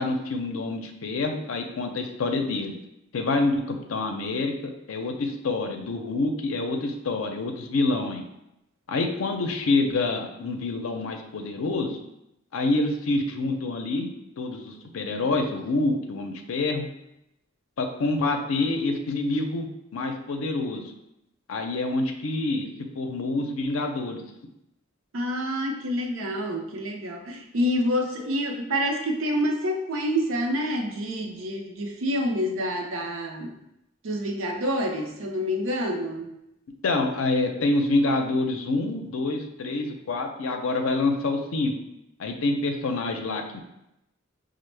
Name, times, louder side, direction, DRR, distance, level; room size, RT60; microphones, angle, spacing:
voice 1, 0.0-2.7 3.1-8.2 8.9-12.0 12.5-16.9 17.8-20.9 21.5-22.7 23.0-24.2 36.8-41.8 42.2-43.6, left 2 dB, 90° left, 4 dB, 0.5 m, -27 dB
voice 2, 25.1-33.6 34.0-36.3, equal, 80° right, 2 dB, 0.6 m, -27 dB
5.1 x 2.0 x 3.2 m, 0.86 s
head